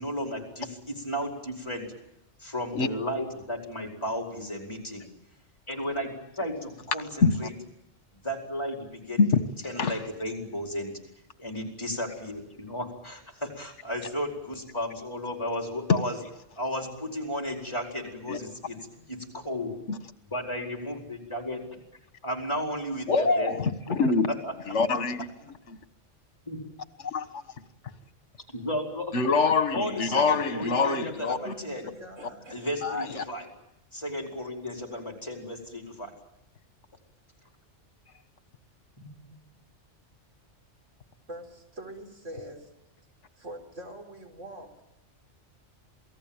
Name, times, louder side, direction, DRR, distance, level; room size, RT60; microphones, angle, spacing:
voice 1, 0.0-1.9 2.4-5.1 5.7-7.5 8.1-9.2 9.6-11.0 11.4-16.2 16.6-18.8 19.1-19.7 20.3-21.6 22.2-23.5 23.9-24.0 24.4-24.5 26.5-26.6 28.5-29.2 29.7-31.9 32.5-33.5 33.9-36.1 39.0-39.3, equal, 20° left, 4.8 m, -34 dB
voice 2, 18.8-19.3 31.1-32.7 41.3-42.7 43.3-44.8, right 1 dB, 85° right, 5.0 m, -44 dB
voice 3, 23.1-24.3 24.7-25.3 25.7-25.8 27.0-27.2 29.1-31.5 32.8-33.2, left 4 dB, 70° left, 1.8 m, -24 dB
27.5 x 19.0 x 8.9 m
omnidirectional pair, 1.3 m